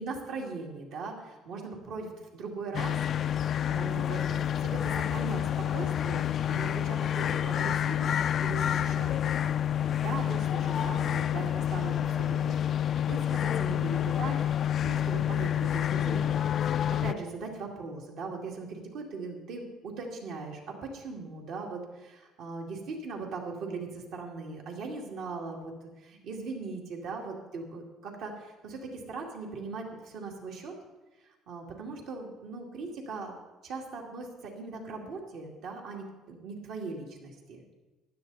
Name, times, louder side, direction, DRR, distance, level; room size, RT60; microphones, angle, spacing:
voice 1, 0.0-2.9 3.4-14.4 14.8-30.7 31.2-33.3 33.6-37.6, right 4 dB, 70° right, 1 dB, 2.4 m, -40 dB
sound 1, 2.7-17.1, left 10 dB, 50° left, 0.3 m, -28 dB
15.0 x 11.0 x 4.1 m, 1.2 s
supercardioid pair, 85°, 0 cm